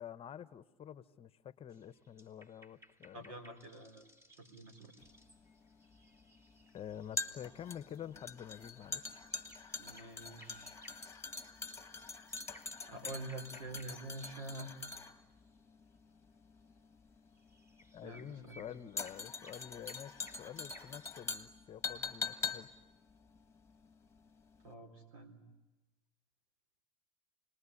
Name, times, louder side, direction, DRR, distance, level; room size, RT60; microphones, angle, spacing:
voice 1, 0.0-3.3 6.7-9.2 17.9-22.7, left 9 dB, 35° left, 16 dB, 0.9 m, -48 dB
sound 1, 1.7-14.9 15.2-15.6 17.3-21.2, equal, 15° right, 2.3 m, -62 dB
voice 2, 3.1-4.0 4.4-4.9 9.8-10.8 12.9-14.7 18.0-18.7 24.6-25.4, right 2 dB, 80° right, 8 dB, 4.0 m, -47 dB
sound 2, 5.0-24.3 24.6-24.7, left 4 dB, 15° left, 1.6 m, -44 dB
29.5 x 20.5 x 9.8 m, 1.1 s
hypercardioid pair, 95°, 17 cm